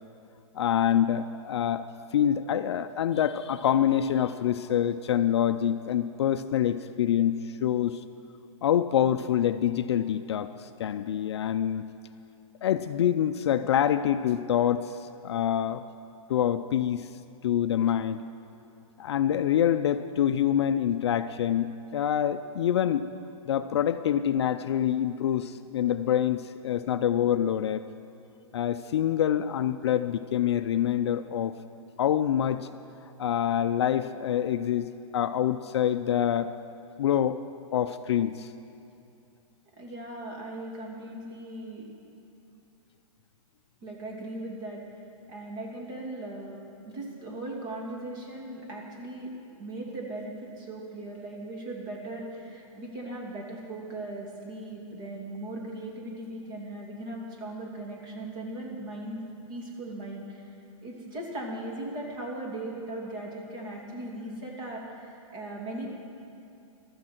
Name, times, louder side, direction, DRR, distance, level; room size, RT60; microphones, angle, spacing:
voice 1, 0.5-1.9 2.1-8.0 8.6-11.8 12.6-15.8 16.3-17.1 17.4-18.2 19.0-23.1 23.5-27.9 28.5-31.6 32.0-32.7 33.2-36.5 37.0-37.4 37.7-38.5, left 10 dB, 50° left, 11 dB, 0.4 m, -26 dB
voice 2, 39.8-41.9 43.8-44.8 45.3-49.3 49.6-59.2 59.5-60.5 60.8-65.9, right 1 dB, 35° right, -2 dB, 2.6 m, -38 dB
15.0 x 13.0 x 4.4 m, 2.7 s
hypercardioid pair, 165°, 18 cm